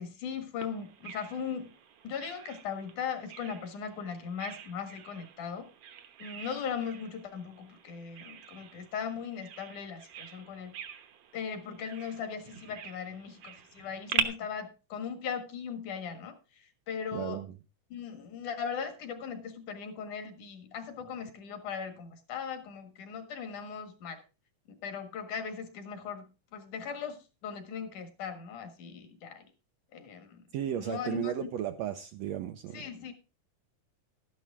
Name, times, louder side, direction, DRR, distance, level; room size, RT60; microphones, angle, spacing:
voice 1, 0.0-1.7 2.0-5.7 6.2-10.7 11.3-17.4 17.9-24.2 24.7-26.3 26.5-29.5 29.9-30.4 30.8-31.5 32.7-33.1, left 7 dB, 70° left, 7 dB, 3.0 m, -38 dB
Bird vocalization bird call bird song, 0.6-14.2, right 8 dB, 60° right, 1.8 m, -42 dB
voice 2, 17.1-17.5 30.5-32.9, right 11 dB, 75° right, 8 dB, 1.6 m, -35 dB
12.5 x 11.0 x 3.6 m, 0.32 s
omnidirectional pair, 3.8 m